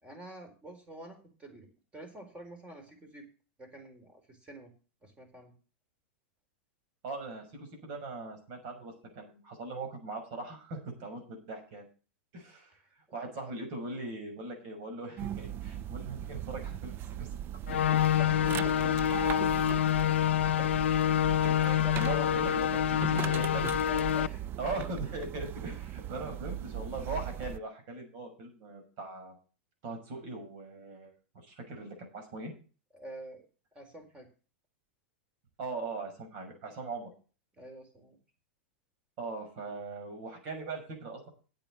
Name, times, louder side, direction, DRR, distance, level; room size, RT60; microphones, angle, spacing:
voice 1, 0.0-1.7 1.9-3.3 3.6-4.7 5.0-5.5 13.4-13.5 18.2-19.6 21.3-22.8 23.9-24.5 32.9-33.4 33.7-34.3 37.6-38.2, equal, 20° right, 6 dB, 4.1 m, -47 dB
voice 2, 7.0-11.9 12.3-12.8 13.1-17.3 17.7-18.0 20.5-20.7 21.4-22.6 23.0-23.6 24.6-29.4 29.8-31.1 31.5-32.5 35.6-37.1 39.2-41.3, right 2 dB, 55° right, 3 dB, 6.3 m, -40 dB
sound 1, 15.2-27.6, right 11 dB, 35° right, 0.4 m, -39 dB
sound 2, 17.7-24.3, left 10 dB, 80° left, 0.5 m, -27 dB
8.8 x 8.5 x 6.8 m, 0.36 s
hypercardioid pair, 110°, 6 cm